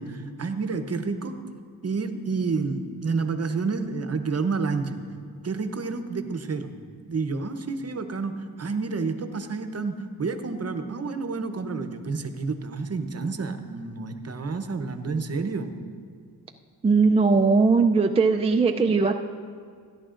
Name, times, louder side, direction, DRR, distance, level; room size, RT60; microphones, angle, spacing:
voice 1, 0.0-1.4 1.8-5.0 5.4-6.8 7.1-15.7, right 4 dB, 40° right, 8 dB, 0.8 m, -29 dB
voice 2, 16.8-19.1, right 4 dB, 15° right, 3 dB, 0.4 m, -19 dB
16.5 x 10.5 x 2.5 m, 2.1 s
cardioid pair, 85°, 39 cm